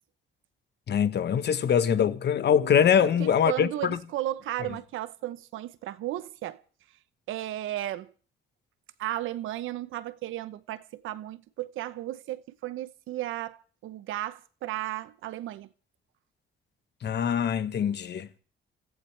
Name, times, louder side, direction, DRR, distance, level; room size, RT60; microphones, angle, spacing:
voice 1, 0.9-4.0 17.0-18.3, left 8 dB, 60° left, 1.2 m, -23 dB
voice 2, 3.0-6.6 7.3-8.1 9.0-15.7, right 14 dB, 85° right, 0.9 m, -34 dB
28.0 x 15.0 x 3.3 m
cardioid pair, 90°, 20 cm